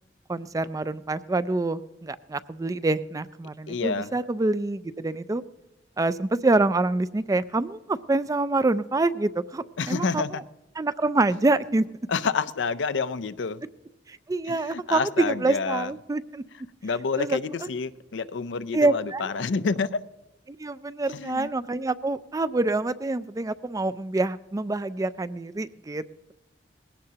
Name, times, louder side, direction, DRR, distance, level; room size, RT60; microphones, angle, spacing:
voice 1, 0.3-5.4 6.0-10.2 10.8-11.8 14.1-16.4 17.2-17.4 18.7-19.3 20.5-26.0, right 2 dB, 20° right, 0.4 m, -26 dB
voice 2, 3.7-4.2 9.8-10.4 12.1-13.6 14.4-15.9 16.8-20.0 21.1-21.5, left 5 dB, 85° left, 0.5 m, -28 dB
20.0 x 17.0 x 2.9 m
head